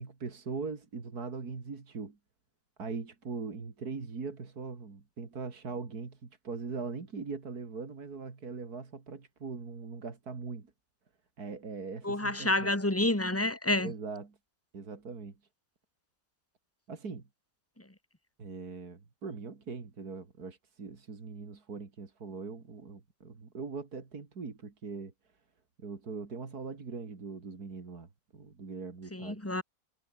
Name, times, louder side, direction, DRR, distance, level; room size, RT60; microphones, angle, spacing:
voice 1, 0.0-2.2 2.8-10.7 11.4-12.7 13.8-14.4 14.7-15.3 16.9-17.3 18.4-25.1 25.8-29.4, right 4 dB, 80° right, 3.3 m, -41 dB
voice 2, 12.0-13.9 29.1-29.6, left 1 dB, 10° left, 2.5 m, -29 dB
omnidirectional pair, 1.6 m